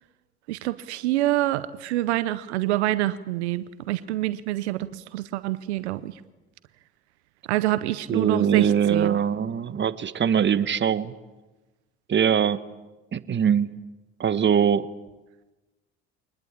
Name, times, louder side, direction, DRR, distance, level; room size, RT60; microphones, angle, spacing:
voice 1, 0.5-6.2 7.5-9.2, right 15 dB, 80° right, 15 dB, 0.8 m, -26 dB
voice 2, 8.1-11.1 12.1-12.6 13.1-13.7 14.2-14.9, right 8 dB, 35° right, 14 dB, 1.2 m, -22 dB
24.0 x 20.0 x 8.7 m, 1.1 s
hypercardioid pair, 60°, 33 cm